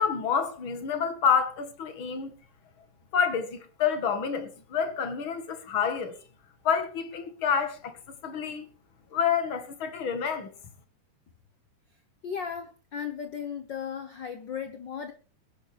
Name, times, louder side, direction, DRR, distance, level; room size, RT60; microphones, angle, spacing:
voice 1, 0.0-2.3 3.1-6.2 6.6-7.9 8.2-8.6 9.1-10.5, left 7 dB, 45° left, 2.2 m, -28 dB
voice 2, 12.2-15.1, left 7 dB, 80° left, 1.0 m, -36 dB
22.0 x 10.5 x 3.5 m
omnidirectional pair, 3.8 m